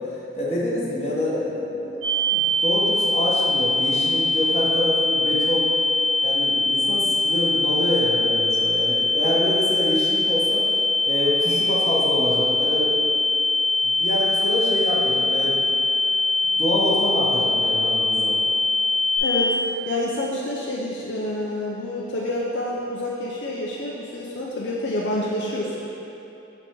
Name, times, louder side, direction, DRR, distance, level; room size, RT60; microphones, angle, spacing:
voice 1, 0.0-5.7 6.2-10.7 11.0-13.2 13.8-15.6 16.4-18.4, left 1 dB, 35° left, -6 dB, 1.0 m, -26 dB
sound 1, 2.0-19.2, left 2 dB, 85° right, 1.2 m, -22 dB
voice 2, 19.2-19.6 19.9-25.8, left 1 dB, 65° left, -4 dB, 0.5 m, -28 dB
5.8 x 3.8 x 4.5 m, 2.9 s
head